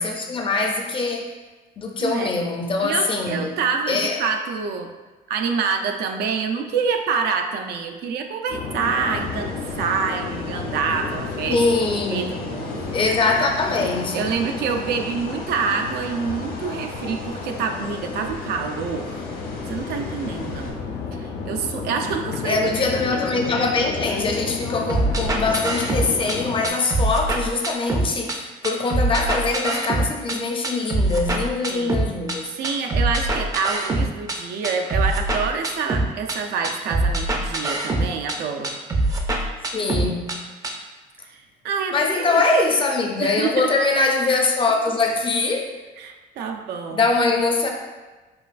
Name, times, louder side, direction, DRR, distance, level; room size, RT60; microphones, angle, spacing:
voice 1, 0.0-1.3 1.8-3.5 3.9-4.2 11.5-12.3 12.9-14.3 22.4-32.6 39.7-40.4 41.9-45.8 46.9-47.7, left 3 dB, 30° left, 2 dB, 0.5 m, -23 dB
voice 2, 2.0-2.4 2.8-4.9 5.3-11.6 12.1-13.1 13.8-19.2 19.7-20.7 21.2-22.6 23.1-23.2 31.7-32.0 32.6-38.8 41.2-42.4 43.2-43.7 46.0-47.0, right 5 dB, 75° right, 4 dB, 0.5 m, -27 dB
sound 1, 8.5-26.7, left 5 dB, 80° left, 0.5 m, -32 dB
sound 2, 8.7-20.7, left 1 dB, 60° left, 1.0 m, -39 dB
sound 3, 24.9-26.4 26.6-28.4 28.6-30.4 30.6-32.4 32.6-34.4 34.6-36.4 36.6-38.4 38.6-40.4 40.6-40.7, right 2 dB, 20° right, 0.5 m, -23 dB
5.3 x 2.4 x 2.4 m, 1.2 s
cardioid pair, 110°, 17 cm